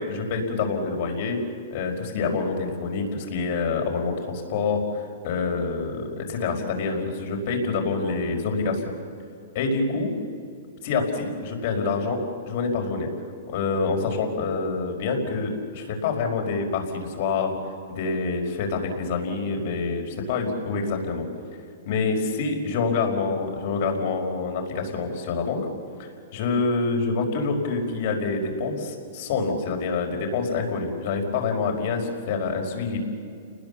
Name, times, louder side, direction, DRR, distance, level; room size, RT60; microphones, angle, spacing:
voice 1, 0.0-1.4 1.7-8.9 9.6-10.2 10.8-13.1 13.5-17.6 17.9-21.3 21.9-25.7 26.0-33.0, left 4 dB, 55° left, 3 dB, 5.2 m, -26 dB
29.5 x 20.0 x 7.1 m, 2.4 s
hypercardioid pair, 135°, 0 cm